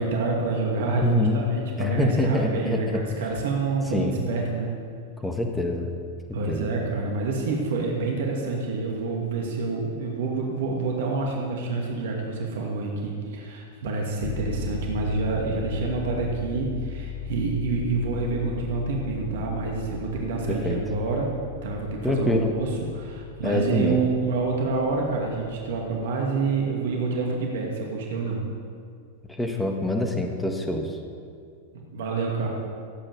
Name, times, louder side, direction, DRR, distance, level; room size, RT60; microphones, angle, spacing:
voice 1, 0.0-4.7 6.3-21.3 21.6-28.4 31.7-32.5, right 3 dB, 60° right, -1 dB, 2.3 m, -27 dB
voice 2, 0.8-1.4 1.8-3.0 3.9-4.2 5.2-6.0 6.4-6.7 20.5-20.8 22.0-22.5 23.4-24.0 29.4-31.0, left 2 dB, 5° left, 3 dB, 1.7 m, -25 dB
sound 1, 14.2-26.1, left 7 dB, 40° left, 1.1 m, -38 dB
17.0 x 8.8 x 7.2 m, 2.3 s
figure-of-eight pair, 95°, 0 cm